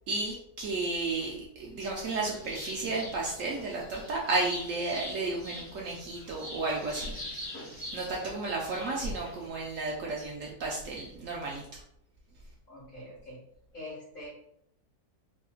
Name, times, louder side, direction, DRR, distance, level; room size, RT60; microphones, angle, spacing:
voice 1, 0.1-7.4 7.8-11.8, right 3 dB, 70° right, -2 dB, 0.8 m, -33 dB
sound 1, 1.8-9.5, left 1 dB, 10° left, 0.8 m, -44 dB
voice 2, 12.7-13.4 13.7-14.3, left 1 dB, 35° left, -5 dB, 1.3 m, -44 dB
3.5 x 2.6 x 2.3 m, 0.76 s
omnidirectional pair, 1.6 m